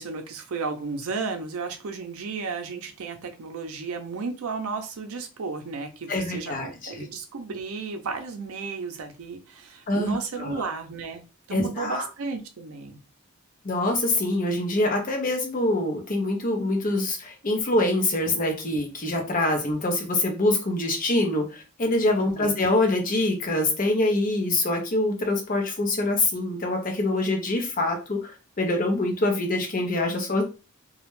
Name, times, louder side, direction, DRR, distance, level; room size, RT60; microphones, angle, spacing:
voice 1, 0.0-11.2 11.5-13.0 22.2-22.5, right 4 dB, 75° right, 5 dB, 0.5 m, -33 dB
voice 2, 6.1-7.1 9.9-10.7 11.5-12.0 13.6-30.4, left 2 dB, 40° left, 3 dB, 0.6 m, -25 dB
2.3 x 2.1 x 3.0 m, 0.31 s
head